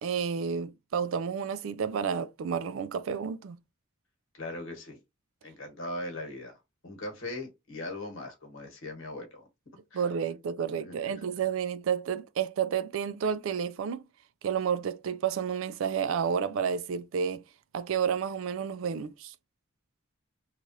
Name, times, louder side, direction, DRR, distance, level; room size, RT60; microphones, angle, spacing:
voice 1, 0.0-3.6 9.9-14.0 14.4-17.4 17.7-19.3, right 7 dB, 70° right, 0.3 m, -30 dB
voice 2, 4.3-5.0 5.4-6.6 6.8-9.5 9.9-10.0 10.7-11.1, left 2 dB, 65° left, 1.2 m, -39 dB
3.1 x 2.4 x 2.7 m
head